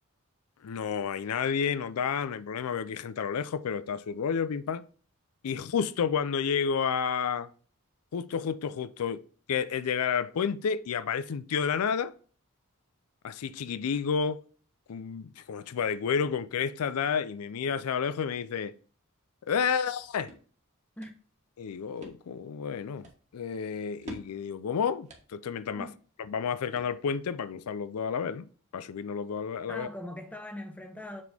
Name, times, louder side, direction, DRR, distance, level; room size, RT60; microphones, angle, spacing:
voice 1, 0.6-4.8 5.4-7.5 8.1-9.2 9.5-12.1 13.2-14.4 14.9-18.7 19.4-20.3 21.6-25.9 26.3-28.5 28.7-29.9, left 6 dB, 85° left, 0.4 m, -30 dB
sound 1, 19.9-27.4, right 1 dB, 30° right, 1.5 m, -52 dB
voice 2, 29.7-31.2, left 1 dB, 5° left, 0.9 m, -40 dB
7.3 x 4.1 x 3.4 m
head